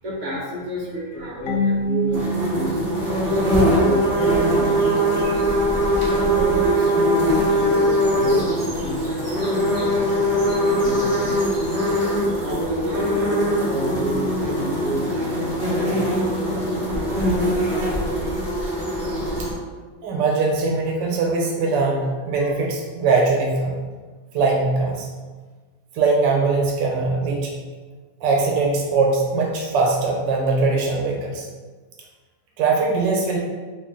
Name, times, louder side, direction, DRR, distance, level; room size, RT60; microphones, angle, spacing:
voice 1, 0.0-5.1 6.0-11.9 12.4-18.3, right 1 dB, 50° right, -5 dB, 1.0 m, -31 dB
Marimba xylophone / Wood, 1.5-4.2, equal, 85° left, 0.7 m, -27 dB
sound 1, 2.1-19.5, equal, 30° right, 0.6 m, -21 dB
voice 2, 20.0-23.7 24.3-25.1 25.9-27.5 28.2-31.5 32.6-33.4, right 3 dB, 80° right, -1 dB, 1.2 m, -21 dB
3.1 x 2.4 x 3.6 m, 1.4 s
omnidirectional pair, 1.9 m